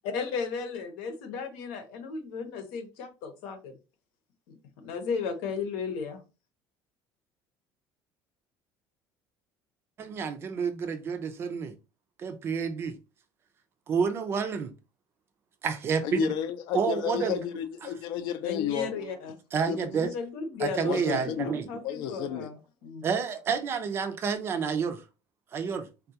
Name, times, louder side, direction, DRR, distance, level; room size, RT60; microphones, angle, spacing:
voice 1, 0.1-3.8 4.5-6.2 18.4-19.4 20.0-22.6 22.8-23.0, left 5 dB, 90° left, 0.9 m, -35 dB
voice 2, 10.0-11.7 12.2-13.0 13.9-14.7 15.6-16.3 16.7-17.4 17.8-17.9 19.0-19.1 19.5-20.1 20.6-21.7 23.0-25.0 25.5-25.9, right 6 dB, 30° right, 0.4 m, -29 dB
voice 3, 16.0-18.9 19.7-19.9 20.8-21.5 21.8-22.5, left 10 dB, 65° left, 0.5 m, -32 dB
3.6 x 2.3 x 2.7 m
cardioid pair, 165°, 8 cm